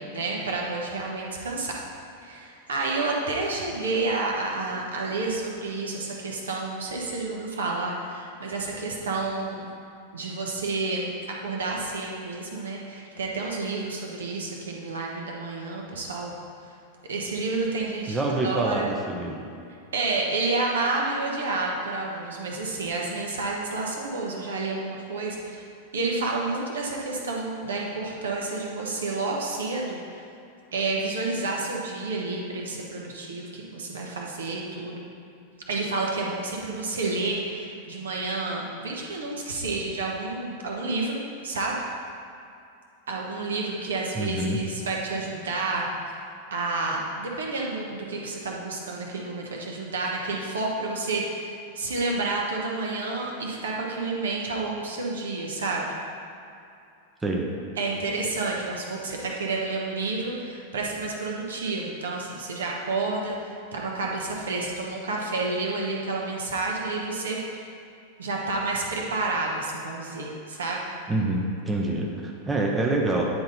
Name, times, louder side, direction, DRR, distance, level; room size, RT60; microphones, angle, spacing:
voice 1, 0.0-1.8 2.2-9.6 10.1-16.3 16.7-16.8 17.0-18.9 19.9-25.6 25.9-30.2 30.7-35.0 35.7-41.8 43.1-46.2 46.5-55.8 57.8-67.6 68.2-70.8, right 3 dB, 65° right, -2 dB, 1.0 m, -30 dB
voice 2, 18.1-19.4 44.1-44.6 57.2-57.4 71.1-73.3, right 2 dB, 15° right, -1 dB, 0.8 m, -26 dB
9.3 x 3.8 x 4.1 m, 2.6 s
figure-of-eight pair, 90°, 0 cm